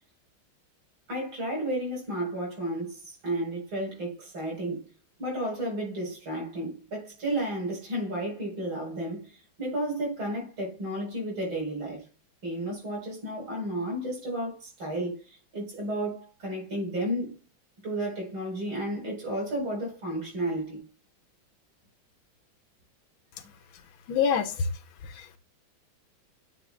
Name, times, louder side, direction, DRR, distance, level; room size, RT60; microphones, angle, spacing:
voice 1, 1.1-4.8 5.2-9.3 9.6-12.0 12.4-17.4 17.8-20.8, right 1 dB, 75° right, 5.1 m, -32 dB
voice 2, 24.1-24.7 25.0-25.4, left 6 dB, 75° left, 1.7 m, -26 dB
9.9 x 7.1 x 2.3 m
omnidirectional pair, 2.3 m